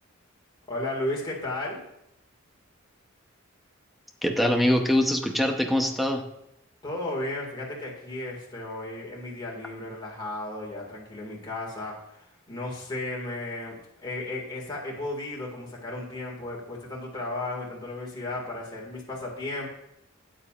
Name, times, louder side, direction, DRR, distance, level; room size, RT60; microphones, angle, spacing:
voice 1, 0.7-1.8 6.8-19.7, left 2 dB, 20° left, -3 dB, 2.0 m, -34 dB
voice 2, 4.2-6.2, left 1 dB, ahead, 3 dB, 0.8 m, -23 dB
12.5 x 9.0 x 2.4 m, 0.80 s
head